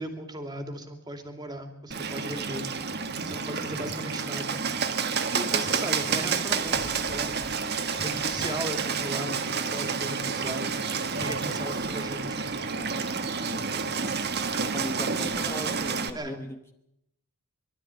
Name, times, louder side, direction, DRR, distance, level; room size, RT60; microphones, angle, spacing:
voice 1, 0.0-2.6 3.2-4.6 5.3-10.7 11.1-12.6 16.1-16.4, right 1 dB, 20° right, 5 dB, 2.8 m, -37 dB
Bird, 1.9-16.1, right 5 dB, 45° right, 1.6 m, -29 dB
voice 2, 2.2-2.7 13.4-13.9 14.6-16.7, equal, 10° left, 4 dB, 1.2 m, -39 dB
24.0 x 13.0 x 9.7 m, 0.82 s
head